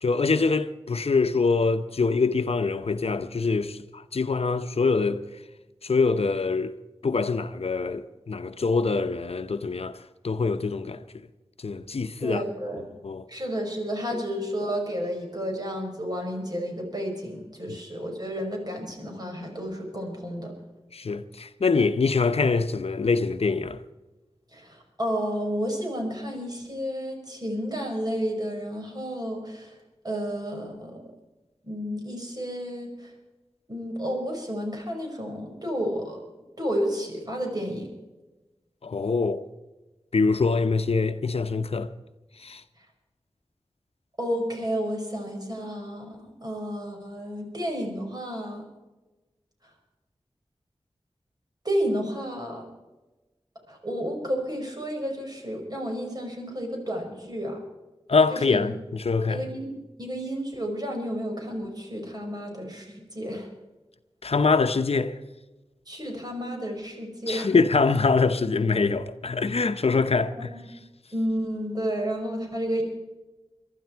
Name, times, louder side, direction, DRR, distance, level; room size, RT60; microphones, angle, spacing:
voice 1, 0.0-5.2 5.8-6.7 7.0-10.0 10.2-11.0 11.6-12.4 13.0-13.2 14.1-14.2 17.7-17.8 20.9-23.8 38.8-39.4 40.1-41.9 42.4-42.6 58.1-59.5 64.2-65.2 67.3-70.5, left 4 dB, 70° left, 0.8 m, -24 dB
voice 2, 12.2-12.8 13.3-20.5 24.5-29.7 30.0-31.0 31.6-33.1 33.7-36.2 36.6-37.9 44.2-48.7 51.6-52.6 53.7-57.6 58.3-58.6 59.3-63.5 65.9-67.5 70.4-70.6 71.1-72.8, equal, 40° right, 5.6 m, -31 dB
22.5 x 12.5 x 4.6 m
wide cardioid pair, 45°, 11 cm